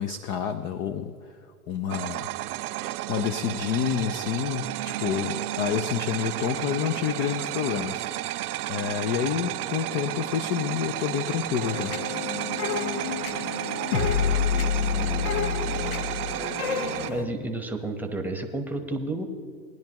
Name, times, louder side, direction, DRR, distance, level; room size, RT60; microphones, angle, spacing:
voice 1, 0.0-1.4 1.7-2.3 3.1-8.1 8.7-11.9, left 8 dB, 30° left, 11 dB, 0.4 m, -28 dB
sound 1, 1.9-17.1, right 15 dB, 85° right, 0.5 m, -32 dB
sound 2, 11.6-17.2, left 7 dB, 75° left, 1.1 m, -28 dB
voice 2, 17.1-19.2, right 2 dB, 5° right, 4 dB, 1.0 m, -31 dB
19.5 x 10.5 x 2.9 m, 2.2 s
hypercardioid pair, 120°, 44 cm